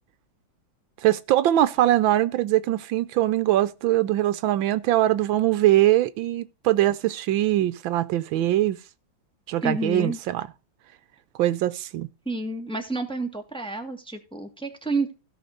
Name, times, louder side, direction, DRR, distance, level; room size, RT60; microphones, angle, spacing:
voice 1, 1.0-8.8 9.5-10.4 11.4-12.1, right 13 dB, 80° right, 1.4 m, -22 dB
voice 2, 9.6-10.2 12.2-15.1, right 2 dB, 5° left, 1.6 m, -29 dB
16.5 x 5.9 x 3.9 m
omnidirectional pair, 2.2 m